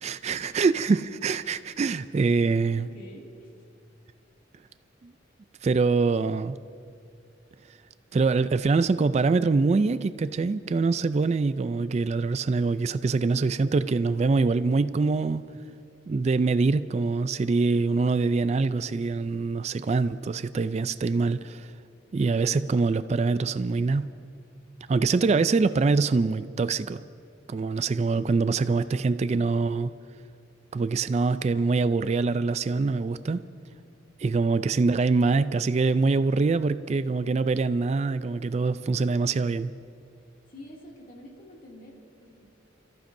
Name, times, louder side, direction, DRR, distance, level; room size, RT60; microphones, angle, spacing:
voice 1, 0.0-2.9 5.0-5.1 5.6-6.6 8.1-15.4 16.1-21.7 22.1-24.0 24.9-27.0 27.5-29.9 30.7-33.4 34.2-39.7, right 4 dB, 35° right, 13 dB, 0.3 m, -24 dB
voice 2, 2.8-3.5 40.5-42.5, equal, 45° left, -2 dB, 2.5 m, -47 dB
30.0 x 14.5 x 2.6 m, 2.3 s
head